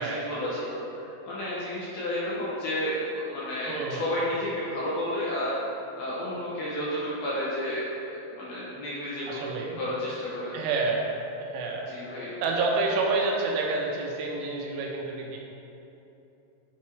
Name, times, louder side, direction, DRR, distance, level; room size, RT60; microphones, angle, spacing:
voice 1, 0.0-5.5 6.0-7.8 8.3-10.6 11.9-12.3, left 1 dB, 70° left, -9 dB, 2.4 m, -31 dB
voice 2, 3.7-4.1 9.3-9.8 10.5-11.1 11.4-11.9 12.4-15.4, right 3 dB, 85° right, -1 dB, 3.4 m, -28 dB
9.7 x 4.4 x 4.5 m, 2.9 s
omnidirectional pair, 5.5 m